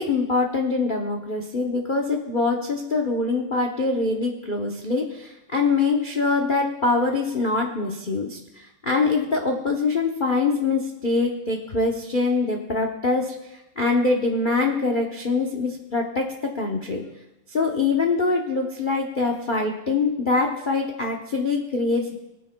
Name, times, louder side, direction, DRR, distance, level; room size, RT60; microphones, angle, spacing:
voice 1, 0.0-17.0 17.5-22.1, left 3 dB, 90° left, 1 dB, 0.4 m, -24 dB
22.5 x 9.0 x 2.2 m, 0.92 s
omnidirectional pair, 2.4 m